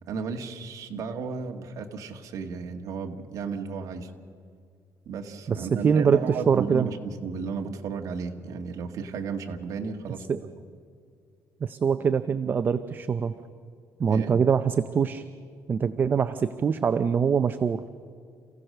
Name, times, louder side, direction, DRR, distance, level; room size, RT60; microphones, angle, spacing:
voice 1, 0.0-4.1 5.0-10.2 14.1-14.4, right 5 dB, 60° right, 3 dB, 1.7 m, -34 dB
voice 2, 5.5-6.9 10.3-10.4 11.6-13.3 14.0-15.2 15.7-17.8, right 6 dB, 30° right, 10 dB, 0.5 m, -24 dB
28.0 x 16.0 x 6.7 m, 2.2 s
cardioid pair, 155°, 7 cm